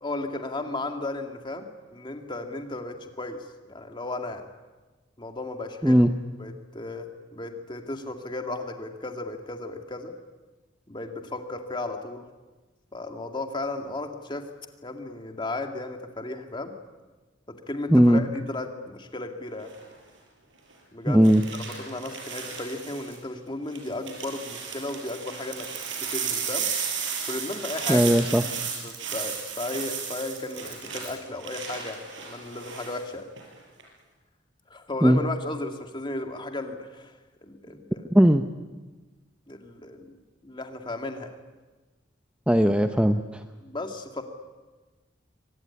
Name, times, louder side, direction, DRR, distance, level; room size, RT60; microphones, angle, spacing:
voice 1, 0.0-4.5 5.2-6.1 6.4-10.1 10.9-12.2 12.9-14.4 14.8-16.7 17.7-19.7 20.9-21.2 21.6-25.7 26.1-26.7 27.3-28.1 28.8-33.2 34.7-37.1 37.4-38.0 39.5-40.2 40.4-41.3 43.6-44.2, left 2 dB, 25° left, 5 dB, 2.2 m, -35 dB
voice 2, 17.9-18.2 21.1-21.4 27.9-28.4 35.0-35.2 38.1-38.4 42.5-43.4, equal, 5° right, 7 dB, 0.7 m, -18 dB
sound 1, 19.6-19.9 21.2-23.2 23.7-33.0 33.4-33.8, right 6 dB, 80° right, 6.2 m, -34 dB
24.5 x 18.5 x 9.8 m, 1.2 s
head